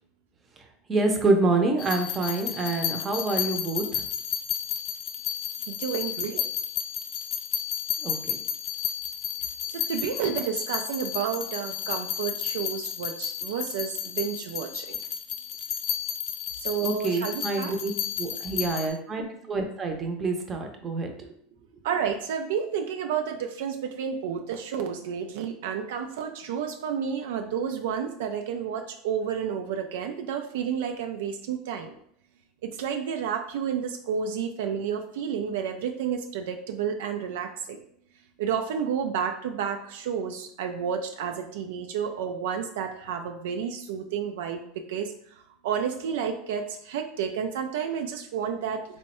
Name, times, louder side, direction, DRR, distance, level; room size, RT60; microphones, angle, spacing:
voice 1, 0.9-4.0 8.0-8.2 16.8-17.9 18.2-21.1, right 3 dB, 25° right, 3 dB, 0.6 m, -27 dB
sound 1, 1.8-18.9, left 9 dB, 50° left, 0.5 m, -32 dB
voice 2, 5.7-6.4 9.7-15.0 16.6-17.7 21.8-31.9 32.6-37.8 38.4-45.1 45.6-48.8, right 7 dB, 80° right, 5 dB, 0.3 m, -31 dB
3.4 x 2.1 x 4.2 m, 0.68 s
supercardioid pair, 110°, 0 cm